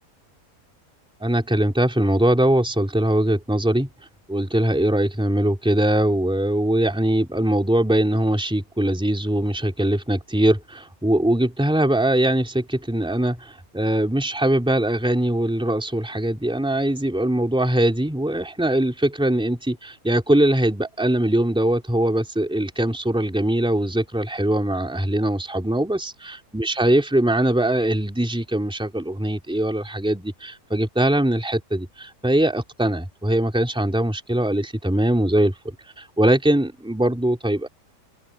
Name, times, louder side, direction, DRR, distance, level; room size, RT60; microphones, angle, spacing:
voice 1, 1.2-3.9 4.3-37.7, right 1 dB, 5° right, 3.2 m, -21 dB
omnidirectional pair, 1.7 m